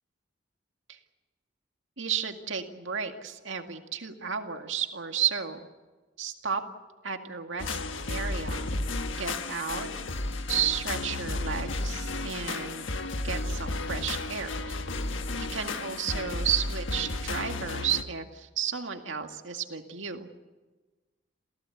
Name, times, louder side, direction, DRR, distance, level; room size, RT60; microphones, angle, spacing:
voice 1, 2.0-5.6 6.2-6.6 7.0-7.8 8.1-8.7 9.2-9.9 10.5-12.9 13.2-14.8 15.4-20.3, right 8 dB, 90° right, 5 dB, 2.1 m, -32 dB
sound 1, 7.6-18.0, left 2 dB, 90° left, 1.4 m, -33 dB
28.5 x 16.0 x 8.2 m, 1.3 s
head